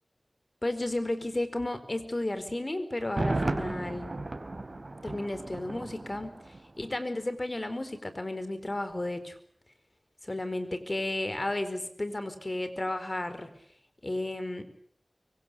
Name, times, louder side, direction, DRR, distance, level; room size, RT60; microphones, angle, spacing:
voice 1, 0.6-4.1 5.0-9.4 10.2-13.5 14.0-14.6, left 1 dB, 45° left, 10 dB, 4.4 m, -33 dB
Thunder, 3.0-6.9 7.2-7.3, right 2 dB, 55° right, 3.5 m, -34 dB
25.0 x 24.5 x 8.2 m, 0.65 s
wide cardioid pair, 40°, 0 cm